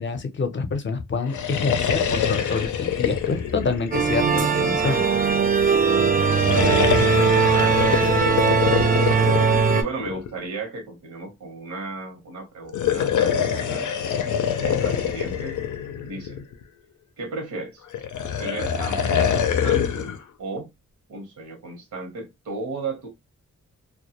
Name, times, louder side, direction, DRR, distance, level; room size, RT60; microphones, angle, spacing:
voice 1, 0.0-5.0, left 4 dB, 40° left, 0.6 m, -27 dB
sound 1, 1.2-4.8 6.1-10.4 12.6-16.6 17.9-20.2, left 8 dB, 90° left, 0.5 m, -25 dB
sound 2, 3.9-9.8, right 5 dB, 30° right, 0.5 m, -20 dB
voice 2, 7.5-9.2 9.7-13.9 14.6-15.6 16.0-16.4 17.2-17.8 18.4-20.1 20.4-20.7 21.1-23.1, right 3 dB, 85° right, 1.0 m, -35 dB
2.2 x 2.1 x 2.8 m
wide cardioid pair, 115°, 30 cm